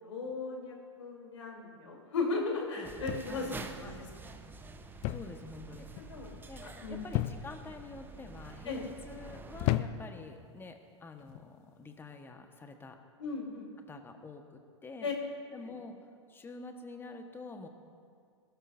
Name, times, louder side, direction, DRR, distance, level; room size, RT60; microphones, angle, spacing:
voice 1, 0.0-4.0 6.1-6.3 6.6-7.1 8.6-8.8 13.2-13.7 15.0-15.1 15.6-15.7, left 3 dB, 75° left, 0 dB, 3.3 m, -36 dB
sound 1, 2.8-9.7, right 3 dB, 15° right, 0.9 m, -48 dB
sound 2, 3.1-3.6 5.0-5.4 5.7-6.1 7.1-7.7 8.4-8.8 9.6-10.2 11.2-11.5, left 14 dB, 40° left, 0.6 m, -33 dB
voice 2, 3.3-4.0 5.1-5.9 6.5-13.0 13.9-15.1 15.5-17.7, left 3 dB, 15° left, 5 dB, 1.3 m, -47 dB
20.5 x 13.0 x 2.6 m, 2.2 s
hypercardioid pair, 100°, 15 cm